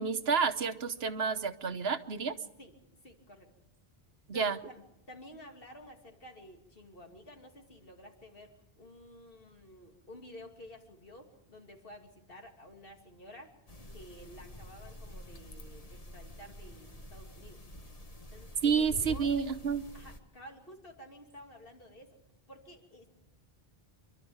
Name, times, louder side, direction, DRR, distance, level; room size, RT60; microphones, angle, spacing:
voice 1, 0.0-2.3 4.3-4.6 18.6-19.8, right 6 dB, 75° right, 10 dB, 1.3 m, -30 dB
voice 2, 3.0-3.5 4.3-4.8 5.1-13.5 13.9-17.6 18.3-19.3 19.9-22.2 22.5-23.1, equal, 60° left, 2 dB, 2.9 m, -52 dB
sound 1, 13.7-20.2, equal, 35° left, 1.5 m, -47 dB
27.0 x 12.0 x 8.7 m, 0.90 s
omnidirectional pair, 1.0 m